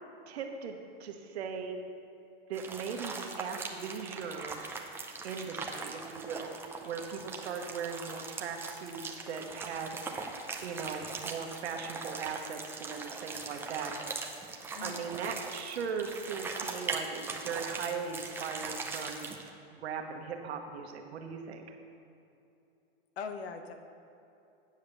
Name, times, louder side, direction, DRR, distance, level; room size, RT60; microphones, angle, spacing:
voice 1, 0.3-1.8 2.5-4.6 5.2-6.5 6.8-10.0 10.6-13.9 14.8-19.3 19.7-21.7, right 6 dB, 85° right, 4 dB, 1.2 m, -39 dB
sound 1, 2.5-19.5, right 4 dB, 5° right, 0.5 m, -41 dB
voice 2, 23.2-23.7, left 5 dB, 85° left, 7 dB, 1.0 m, -40 dB
8.8 x 5.1 x 7.1 m, 2.7 s
supercardioid pair, 135°, 31 cm